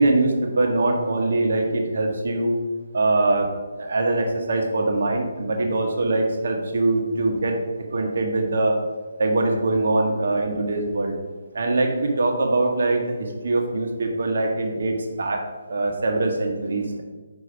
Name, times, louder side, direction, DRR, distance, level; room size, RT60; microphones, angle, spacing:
voice 1, 0.0-2.5 2.9-3.5 3.8-7.6 7.9-8.8 9.2-11.1 11.5-15.4 15.7-17.0, right 2 dB, 60° right, 2 dB, 1.1 m, -22 dB
5.1 x 4.5 x 4.7 m, 1.3 s
figure-of-eight pair, 145°, 0 cm